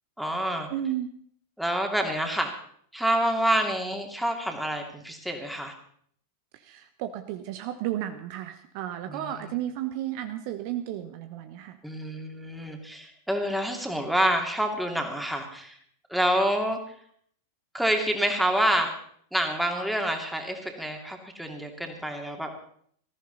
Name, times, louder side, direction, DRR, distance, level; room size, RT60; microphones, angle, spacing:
voice 1, 0.2-0.7 1.6-2.5 2.9-5.7 9.1-9.5 11.8-15.8 16.1-16.8 17.7-19.0 19.3-22.5, right 1 dB, ahead, 3 dB, 2.8 m, -27 dB
voice 2, 0.7-1.1 6.5-11.8, right 12 dB, 45° right, 8 dB, 1.1 m, -33 dB
20.0 x 14.5 x 4.1 m, 0.63 s
figure-of-eight pair, 90°, 0 cm